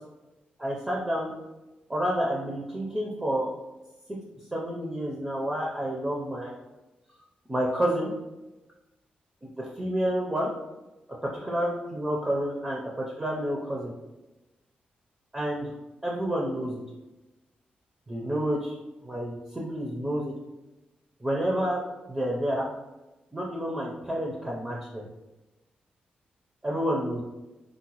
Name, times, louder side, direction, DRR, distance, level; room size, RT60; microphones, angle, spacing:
voice 1, 0.6-1.3 1.9-3.5 4.5-6.5 7.5-8.1 9.4-9.5 9.8-10.5 11.3-13.9 15.3-15.7 16.0-16.8 18.1-18.7 19.0-20.3 21.2-21.8 22.1-22.7 23.3-25.0 26.6-27.2, equal, 10° right, -3 dB, 0.4 m, -29 dB
3.9 x 2.0 x 2.9 m, 1.0 s
wide cardioid pair, 145°, 3 cm